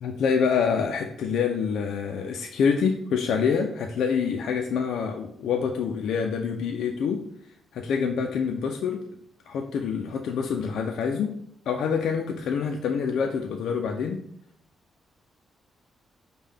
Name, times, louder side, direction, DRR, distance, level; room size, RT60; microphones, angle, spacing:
voice 1, 0.0-7.2 7.7-9.0 9.5-11.3 11.7-14.2, left 6 dB, 80° left, 2 dB, 0.3 m, -26 dB
5.4 x 2.2 x 3.3 m, 0.68 s
cardioid pair, 135°, 0 cm